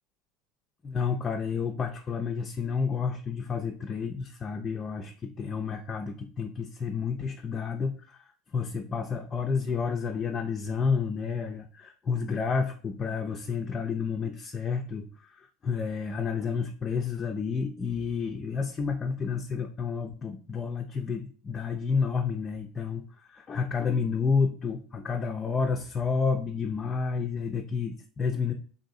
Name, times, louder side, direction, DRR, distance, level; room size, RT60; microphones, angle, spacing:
voice 1, 0.8-28.5, left 5 dB, 30° left, 3 dB, 0.3 m, -30 dB
3.5 x 2.6 x 2.4 m, 0.43 s
hypercardioid pair, 75°, 0 cm